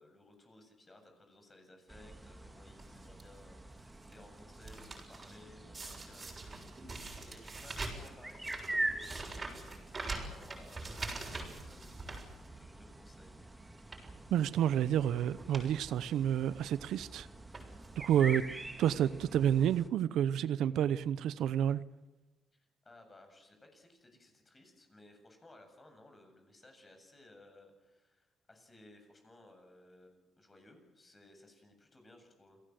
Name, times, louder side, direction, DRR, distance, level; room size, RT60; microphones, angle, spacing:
voice 1, 0.0-6.6 7.0-9.7 10.2-12.2 12.5-13.4 22.5-32.6, left 2 dB, 25° left, 7.6 m, -59 dB
sound 1, 1.9-19.9, right 2 dB, 15° right, 2.5 m, -45 dB
sound 2, 2.8-3.2 3.8-4.1 4.4-5.4 5.7-12.8 13.2-13.4 13.8-14.2 15.0-15.1 15.3-15.7 16.0-16.1 17.0-17.2 17.5-18.0 18.8-18.9 19.1-19.2, right 3 dB, 30° right, 6.8 m, -44 dB
voice 2, 14.3-17.3 18.0-18.4 18.8-21.8, right 10 dB, 80° right, 0.8 m, -29 dB
28.5 x 18.0 x 7.8 m
cardioid pair, 90°, 0 cm